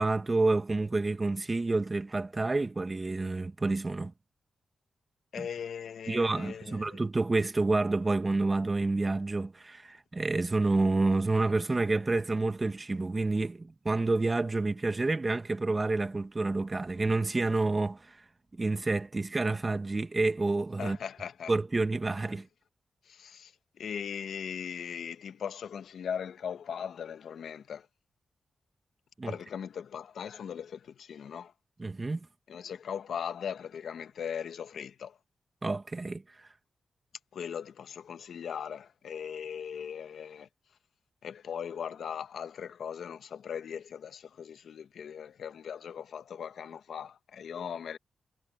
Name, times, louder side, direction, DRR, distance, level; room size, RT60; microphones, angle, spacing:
voice 1, 0.0-4.1 5.4-5.5 6.1-18.2 18.6-21.0 21.5-22.5 29.2-29.3 31.8-32.3 35.6-36.2, right 3 dB, 35° right, 1.9 m, -29 dB
voice 2, 5.3-7.0 20.8-21.5 22.3-22.4 23.0-27.9 29.3-31.5 32.5-35.2 37.3-40.5 41.2-48.0, left 8 dB, 75° left, 1.3 m, -39 dB
supercardioid pair, 50°, 0 cm